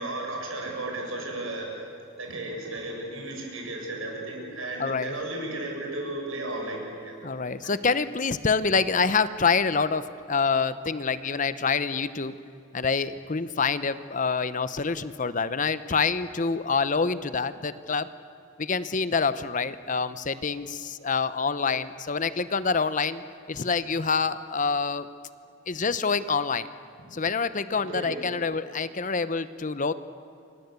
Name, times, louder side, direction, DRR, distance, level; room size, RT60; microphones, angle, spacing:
voice 1, 0.0-1.8 2.2-7.2 7.6-7.7 27.9-28.1, right 2 dB, 85° right, 1 dB, 7.5 m, -34 dB
voice 2, 4.8-5.2 7.2-12.4 12.7-18.1 18.6-23.2 23.5-25.1 25.7-26.7 27.1-29.9, left 5 dB, 40° left, 14 dB, 0.8 m, -26 dB
29.0 x 24.5 x 8.2 m, 2.7 s
head